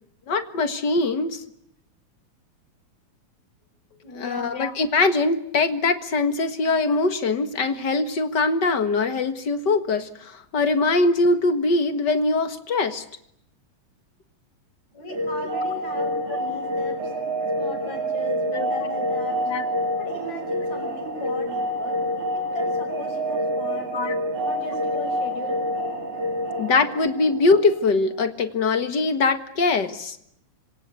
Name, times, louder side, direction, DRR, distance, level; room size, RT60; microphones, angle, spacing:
voice 1, 0.3-1.4 4.2-13.0 16.3-16.4 18.5-18.7 19.5-19.6 23.9-24.1 26.6-30.2, left 3 dB, 40° left, 9 dB, 1.9 m, -22 dB
voice 2, 4.0-4.6 14.9-17.1 17.6-19.4 20.0-22.0 22.3-23.9 24.3-25.6, left 2 dB, 70° left, 5 dB, 7.2 m, -37 dB
sound 1, 15.1-27.9, equal, 90° right, 5.3 m, -27 dB
26.5 x 25.0 x 8.3 m, 0.73 s
omnidirectional pair, 3.3 m